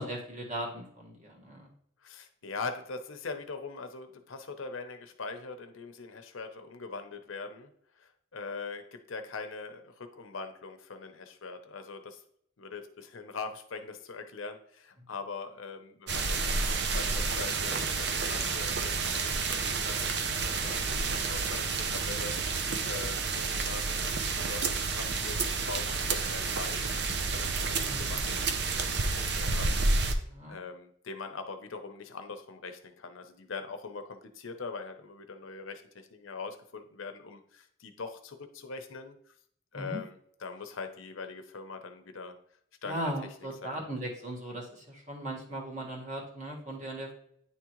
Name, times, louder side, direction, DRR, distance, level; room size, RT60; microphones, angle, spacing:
voice 1, 0.0-1.7 27.8-28.1 30.3-30.6 39.7-40.0 42.8-47.1, right 1 dB, 35° right, -1 dB, 1.6 m, -38 dB
voice 2, 2.0-12.2 12.6-20.1 20.4-26.8 27.3-29.7 30.5-39.3 39.7-42.4 42.8-43.0 43.6-43.8, left 4 dB, 85° left, 7 dB, 0.7 m, -42 dB
sound 1, 16.1-30.1, right 4 dB, 55° right, 0.6 m, -30 dB
9.6 x 3.6 x 3.0 m, 0.67 s
head